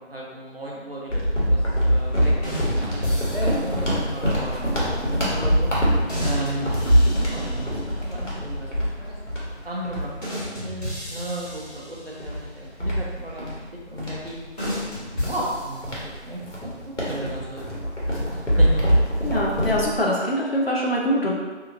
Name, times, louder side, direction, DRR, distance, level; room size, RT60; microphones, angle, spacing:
voice 1, 0.1-5.7 6.2-6.8 7.2-7.7 8.0-8.7 8.9-9.2 9.6-13.5 13.9-14.7 15.2-17.6 18.1-18.8, right 1 dB, 55° right, -4 dB, 0.7 m, -34 dB
sound 1, 1.1-11.0 11.4-11.6 12.2-19.9, equal, 80° left, 1.1 m, -24 dB
sound 2, 2.4-3.8 6.1-8.1 10.2-12.4 14.6-16.2, left 1 dB, 35° left, 1.3 m, -33 dB
voice 2, 19.2-21.3, equal, 55° left, -3 dB, 0.6 m, -23 dB
2.8 x 2.6 x 2.5 m, 1.3 s
figure-of-eight pair, 170°, 35 cm